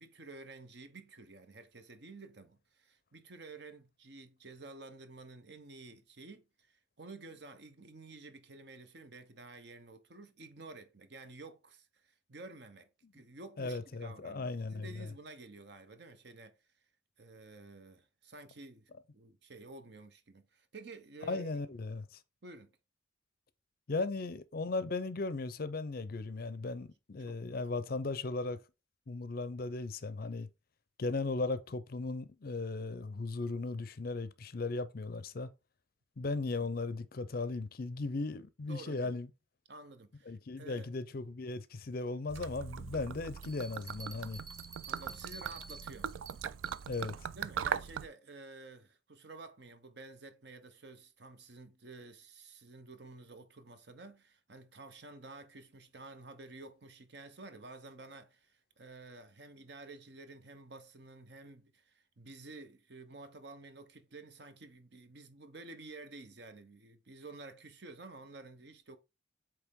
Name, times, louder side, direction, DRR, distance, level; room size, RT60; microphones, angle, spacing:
voice 1, 0.0-16.6 17.2-21.6 22.4-22.7 27.2-27.6 36.6-36.7 38.7-39.1 39.7-40.9 44.8-46.1 47.4-69.0, right 3 dB, 55° right, 0.9 m, -51 dB
voice 2, 13.6-15.1 21.3-22.2 23.9-28.6 29.1-30.5 31.0-35.5 36.2-39.3 40.3-44.4 46.9-47.1, left 3 dB, 50° left, 0.5 m, -37 dB
Gurgling / Liquid, 42.3-48.1, right 8 dB, 75° right, 0.4 m, -40 dB
Bell, 43.4-47.1, right 4 dB, 15° right, 0.7 m, -51 dB
8.1 x 3.3 x 3.6 m
head